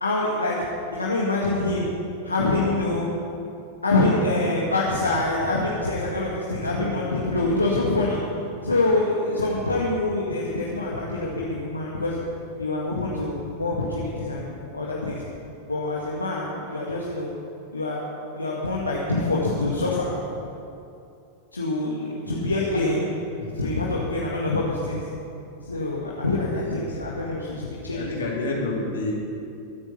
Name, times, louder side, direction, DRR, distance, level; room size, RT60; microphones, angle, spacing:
voice 1, 0.0-0.6 0.9-1.9 2.2-3.1 3.8-8.2 8.6-12.2 12.6-15.2 15.7-17.3 17.7-18.1 18.3-20.1 21.5-23.1 23.6-25.1 25.6-28.0, left 2 dB, 80° left, -4 dB, 1.8 m, -25 dB
voice 2, 6.6-7.1 9.2-9.5 22.2-22.5 22.8-22.9 23.4-23.7 26.5-27.0 27.9-29.2, left 2 dB, 65° left, -3 dB, 3.9 m, -31 dB
23.0 x 9.0 x 5.6 m, 2.7 s
figure-of-eight pair, 90°, 0 cm